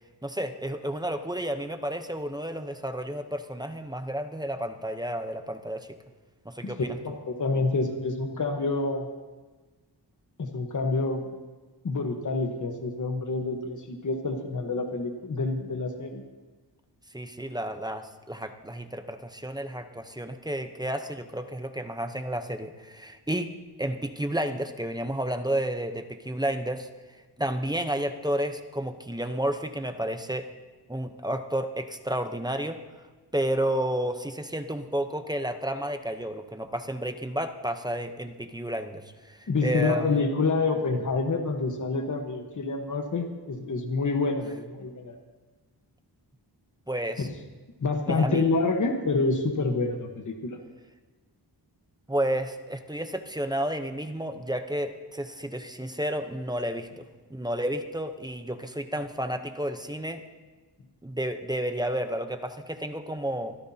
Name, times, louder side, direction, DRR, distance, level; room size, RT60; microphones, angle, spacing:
voice 1, 0.2-6.0 6.4-7.0 17.1-26.9 27.4-30.5 30.9-32.8 33.3-40.2 46.9-47.3 48.1-48.4 52.1-60.2 61.0-63.6, right 1 dB, 10° right, 7 dB, 0.8 m, -31 dB
voice 2, 7.0-9.1 10.4-11.3 11.8-16.2 39.5-45.1 47.2-47.3 47.8-50.6, left 3 dB, 45° left, 3 dB, 1.3 m, -27 dB
24.5 x 14.5 x 2.8 m, 1.3 s
wide cardioid pair, 125°, 42 cm